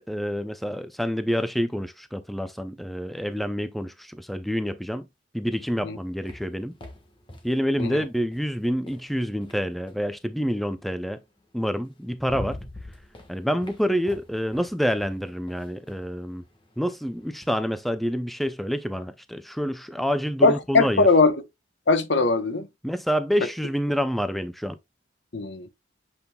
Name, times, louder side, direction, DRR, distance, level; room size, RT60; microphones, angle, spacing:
voice 1, 0.0-5.1 5.3-6.7 7.4-11.2 11.5-12.6 13.3-16.4 16.8-21.1 22.8-24.8, equal, ahead, 0.4 m, -27 dB
sound 1, 5.6-10.1 11.4-11.5 11.9-17.6, left 1 dB, 25° left, 1.4 m, -45 dB
voice 2, 20.4-21.4 21.9-22.7 25.3-25.7, left 3 dB, 80° left, 1.0 m, -20 dB
8.1 x 5.2 x 2.3 m
head